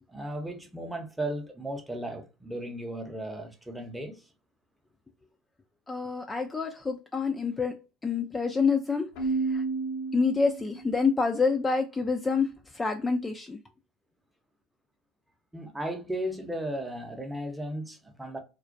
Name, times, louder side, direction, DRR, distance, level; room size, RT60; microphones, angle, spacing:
voice 1, 0.1-4.2 15.5-18.4, right 1 dB, 10° right, 0.7 m, -35 dB
voice 2, 5.9-9.1 9.5-9.6 10.1-12.5 12.7-13.6, left 4 dB, 20° left, 0.3 m, -27 dB
Keyboard (musical), 9.1-11.0, right 4 dB, 70° left, 0.5 m, -31 dB
2.3 x 2.1 x 2.5 m
hypercardioid pair, 80°, 0 cm